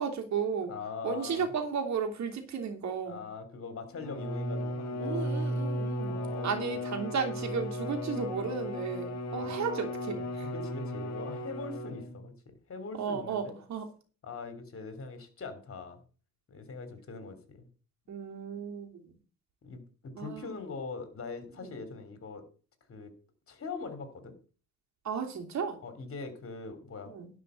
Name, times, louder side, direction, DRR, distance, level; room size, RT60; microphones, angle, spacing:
voice 1, 0.0-0.7 1.0-3.2 5.0-6.2 6.4-10.5 13.0-13.9 18.1-19.1 20.1-20.5 21.6-21.8 25.0-25.8 27.1-27.3, right 6 dB, 65° right, 4 dB, 3.0 m, -34 dB
voice 2, 0.7-1.5 3.1-5.3 6.0-6.8 9.4-9.6 10.5-13.6 14.2-16.0 16.5-17.7 19.6-22.4 22.9-23.1 23.5-24.3 25.8-27.1, left 4 dB, 45° left, 9 dB, 3.3 m, -42 dB
Bowed string instrument, 4.0-12.3, equal, 65° left, 2.3 m, -35 dB
11.0 x 5.0 x 8.3 m, 0.39 s
cardioid pair, 90°, 30 cm